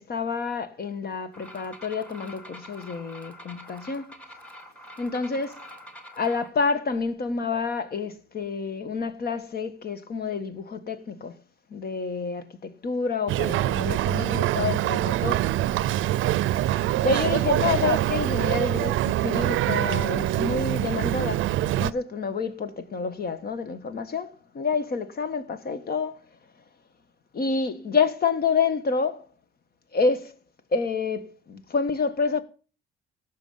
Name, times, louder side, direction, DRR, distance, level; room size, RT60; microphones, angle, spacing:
voice 1, 0.0-4.1 5.0-5.6 6.2-11.4 11.7-15.5 17.0-26.2 27.3-29.3 29.9-30.3 30.7-32.4, left 5 dB, 50° left, 1.5 m, -28 dB
sound 1, 1.3-6.5, equal, 5° left, 1.9 m, -45 dB
Boat Water vehicle, 13.3-21.9, right 14 dB, 80° right, 0.5 m, -24 dB
17.5 x 6.4 x 5.6 m
cardioid pair, 90°, 20 cm